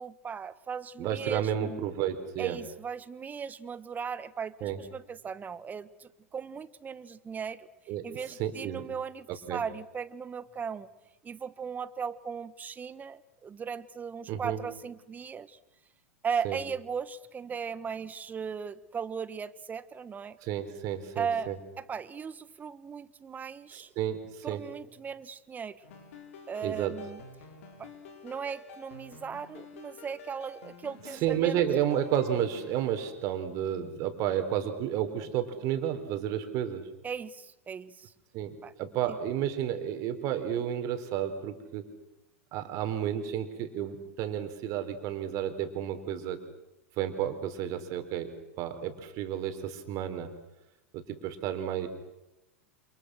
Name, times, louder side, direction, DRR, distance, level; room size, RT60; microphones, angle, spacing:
voice 1, 0.0-1.8 2.4-7.7 8.0-10.9 11.2-15.6 16.2-20.4 21.2-21.5 21.8-23.9 24.4-25.8 26.5-27.2 27.8-27.9 28.2-31.6 37.0-38.1 38.6-38.7 39.1-39.2, right 6 dB, 20° right, 16 dB, 1.4 m, -37 dB
voice 2, 1.0-2.6 4.6-4.8 7.9-8.0 8.4-8.8 9.3-9.6 14.3-14.6 16.4-16.6 20.4-21.6 23.7-24.6 26.6-27.0 31.1-36.9 38.3-41.9 42.5-46.4 47.0-50.3 50.9-51.9, right 10 dB, 45° right, 8 dB, 4.2 m, -31 dB
sound 1, 25.8-33.1, left 4 dB, 65° left, 5.3 m, -49 dB
29.0 x 28.0 x 6.5 m, 0.96 s
hypercardioid pair, 95°, 8 cm